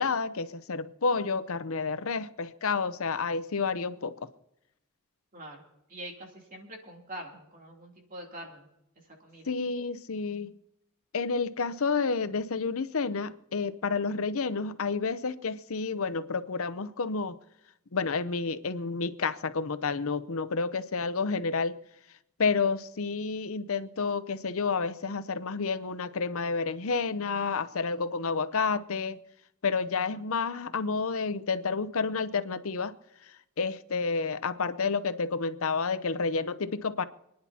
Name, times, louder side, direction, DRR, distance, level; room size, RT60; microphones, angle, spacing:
voice 1, 0.0-4.2 9.5-10.5 11.1-17.4 17.9-21.8 22.4-29.2 29.6-32.9 33.2-37.0, left 4 dB, 65° left, 0.7 m, -30 dB
voice 2, 5.3-5.6 5.9-8.7 9.2-9.5, right 1 dB, 35° right, 3.0 m, -44 dB
28.5 x 10.5 x 2.8 m
head